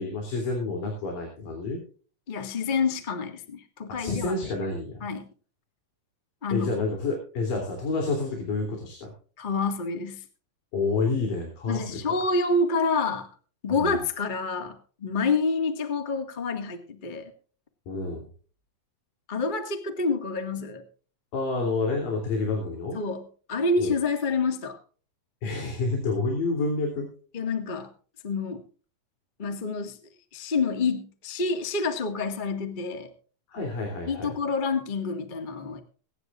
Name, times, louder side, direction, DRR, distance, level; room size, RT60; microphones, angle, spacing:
voice 1, 0.0-1.8 4.0-5.0 6.5-9.1 10.7-12.1 13.7-14.0 17.9-18.3 21.3-23.0 23.8-23.9 25.4-27.1 33.5-34.3, left 3 dB, 90° left, 1 dB, 4.9 m, -29 dB
voice 2, 2.3-4.4 5.0-5.3 6.4-6.7 9.4-10.2 11.7-13.3 13.6-17.3 19.3-20.8 22.9-24.8 27.3-27.9 28.2-28.6 29.4-30.0 30.3-33.1 34.1-35.8, left 3 dB, 25° left, 6 dB, 1.2 m, -28 dB
23.5 x 10.5 x 2.5 m, 0.40 s
omnidirectional pair, 3.8 m